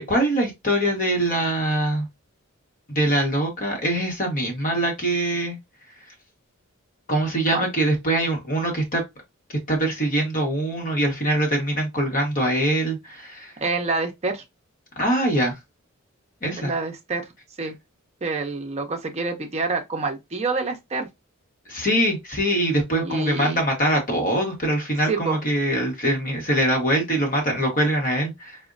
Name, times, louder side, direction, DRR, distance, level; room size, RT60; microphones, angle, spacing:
voice 1, 0.0-2.1 2.9-5.6 7.1-9.0 9.7-13.5 15.0-15.5 16.4-16.7 21.7-28.6, right 1 dB, 40° left, 1.1 m, -23 dB
voice 2, 13.6-14.4 16.6-17.2 17.6-17.7 18.2-21.1 23.0-23.6 25.1-25.4, right 3 dB, 30° right, 0.6 m, -27 dB
4.2 x 2.1 x 2.5 m
head